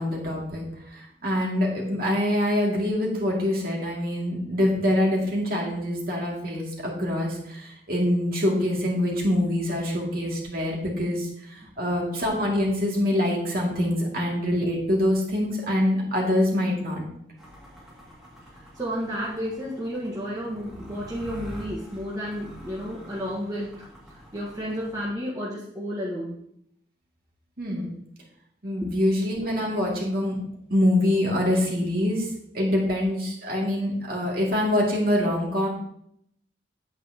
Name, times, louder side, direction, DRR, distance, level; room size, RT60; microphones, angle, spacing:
voice 1, 0.0-17.0 27.6-27.9 28.6-30.4 30.7-32.3 32.5-35.7, left 1 dB, 50° right, -3 dB, 2.5 m, -25 dB
sound 1, 17.4-25.1, equal, ahead, 2.2 m, -45 dB
voice 2, 18.7-26.4 28.8-28.9, equal, 20° right, -5 dB, 1.4 m, -32 dB
9.0 x 8.8 x 2.9 m, 0.72 s
head